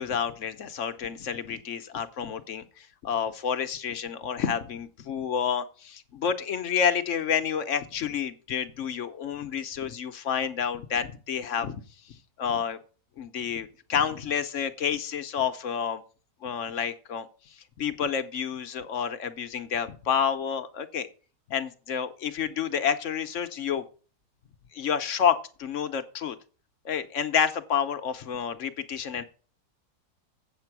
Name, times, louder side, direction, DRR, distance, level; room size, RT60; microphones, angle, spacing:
voice 1, 0.0-11.8 12.1-12.8 13.2-16.0 16.4-17.3 17.8-21.1 21.5-23.8 24.7-26.4 26.8-29.2, left 7 dB, 60° left, 10 dB, 1.0 m, -29 dB
8.2 x 7.3 x 5.9 m, 0.38 s
omnidirectional pair, 1.6 m